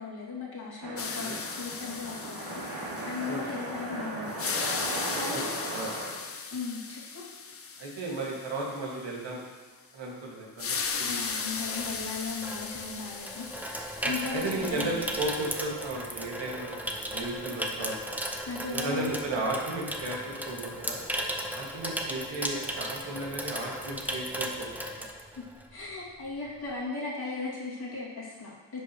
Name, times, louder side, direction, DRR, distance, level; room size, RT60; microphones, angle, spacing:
voice 1, 0.0-2.7 3.0-5.5 6.5-7.3 11.1-15.1 18.5-19.2 25.4-25.5 25.7-28.8, left 4 dB, 55° left, -5 dB, 2.5 m, -37 dB
sound 1, 0.8-6.1, right 1 dB, 55° right, 2.7 m, -37 dB
voice 2, 0.9-1.4 3.2-3.5 5.3-5.4 5.7-5.9 7.8-9.4 9.9-11.1 14.0-18.0 18.7-21.0 21.5-24.7 25.0-25.1, right 2 dB, 75° right, -3 dB, 2.1 m, -35 dB
sound 2, 1.0-3.9 4.2-9.1 10.6-15.7, left 5 dB, 30° left, 0.6 m, -37 dB
Water tap faucet / Sink (filling or washing), 10.8-25.8 26.1-26.4, equal, 5° right, 0.7 m, -36 dB
10.5 x 6.9 x 3.1 m, 1.4 s
cardioid pair, 105°, 45 cm